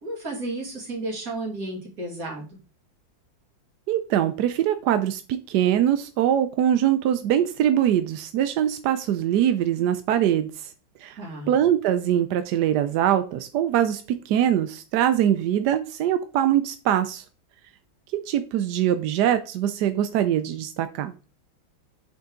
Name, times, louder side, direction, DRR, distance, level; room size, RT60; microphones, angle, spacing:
voice 1, 0.0-2.6 11.2-11.5, right 2 dB, 40° right, -2 dB, 3.0 m, -33 dB
voice 2, 3.9-5.2 5.5-10.7 11.0-11.2 11.5-17.2 18.3-21.1, right 10 dB, 70° right, 10 dB, 1.0 m, -23 dB
8.1 x 5.6 x 3.8 m, 0.35 s
omnidirectional pair, 2.2 m